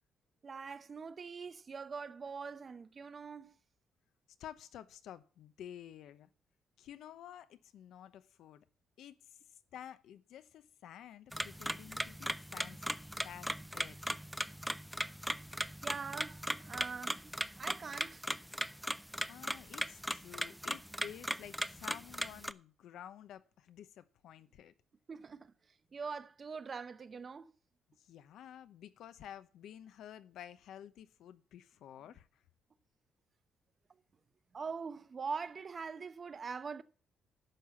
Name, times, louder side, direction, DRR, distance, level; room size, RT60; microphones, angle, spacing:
voice 1, 0.4-3.5 15.8-17.2 17.6-18.3 25.1-25.5 25.9-27.5 34.5-36.8, right 5 dB, 40° right, 0.8 m, -43 dB
voice 2, 4.4-6.3 6.8-8.7 9.0-13.0 13.2-14.0 19.3-24.7 28.0-32.4, left 10 dB, 80° left, 0.8 m, -51 dB
sound 1, 11.3-22.5, equal, ahead, 0.4 m, -38 dB
10.5 x 5.8 x 7.6 m
cardioid pair, 90°, 0 cm